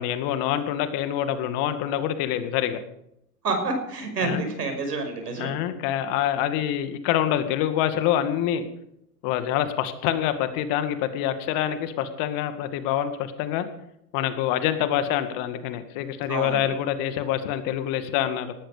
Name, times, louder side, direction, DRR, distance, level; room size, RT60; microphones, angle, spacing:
voice 1, 0.0-2.8 4.2-4.4 5.4-8.6 9.2-13.7 14.1-18.5, left 11 dB, 45° left, 10 dB, 2.1 m, -26 dB
voice 2, 3.4-5.6 16.3-16.6, right 3 dB, 80° right, 5 dB, 6.0 m, -28 dB
19.0 x 14.0 x 5.2 m, 0.77 s
hypercardioid pair, 105°, 47 cm